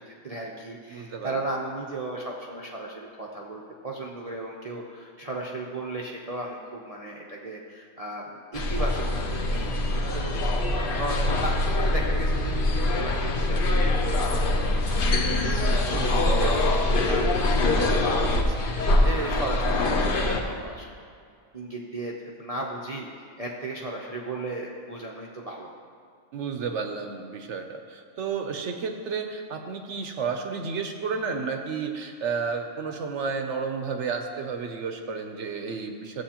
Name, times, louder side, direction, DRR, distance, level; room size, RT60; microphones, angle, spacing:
voice 1, 0.0-16.8 17.0-20.9 21.5-23.1 23.4-25.7, right 2 dB, 40° right, -2 dB, 0.5 m, -35 dB
voice 2, 0.9-1.5 15.9-16.8 26.3-36.2, right 5 dB, 65° right, 5 dB, 0.8 m, -32 dB
sound 1, 8.5-20.4, left 2 dB, 50° left, 0.8 m, -24 dB
14.0 x 7.9 x 2.9 m, 2.3 s
omnidirectional pair, 1.5 m